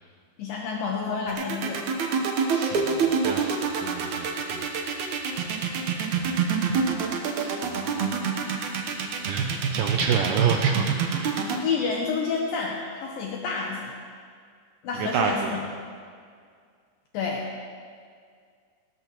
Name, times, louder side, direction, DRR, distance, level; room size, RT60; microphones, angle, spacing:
voice 1, 0.4-1.9 11.6-14.0 14.8-15.6 17.1-17.5, left 5 dB, 70° left, -2 dB, 2.7 m, -29 dB
sound 1, 1.3-11.6, right 6 dB, 65° right, 2.1 m, -26 dB
voice 2, 2.5-4.7 6.2-6.8 7.4-7.9 9.3-10.9 11.1-11.4 14.9-15.6, right 6 dB, 80° right, 3 dB, 2.0 m, -29 dB
19.5 x 16.5 x 3.1 m, 2.1 s
omnidirectional pair, 4.6 m